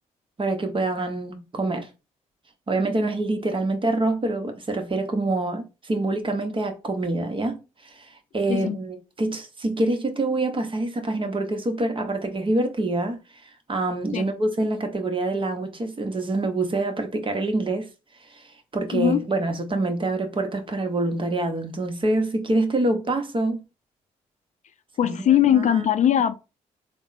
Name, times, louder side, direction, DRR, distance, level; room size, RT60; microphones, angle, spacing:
voice 1, 0.4-1.9 2.7-17.9 18.3-18.5 18.7-23.6 25.0-25.9, right 2 dB, 35° right, 1.0 m, -26 dB
voice 2, 25.0-26.3, left 10 dB, 50° left, 0.4 m, -20 dB
3.5 x 2.1 x 4.0 m
hypercardioid pair, 50°, 16 cm